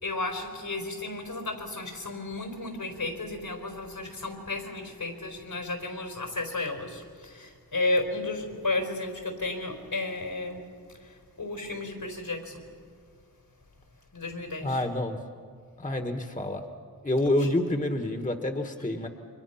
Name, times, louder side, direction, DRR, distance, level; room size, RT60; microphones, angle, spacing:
voice 1, 0.0-10.7 11.0-12.7 14.1-14.8, left 2 dB, 75° left, 4 dB, 4.5 m, -33 dB
voice 2, 14.6-15.2 15.8-16.6 17.0-19.1, left 1 dB, 20° left, 5 dB, 1.5 m, -28 dB
29.5 x 24.0 x 5.8 m, 2.1 s
wide cardioid pair, 55°, 36 cm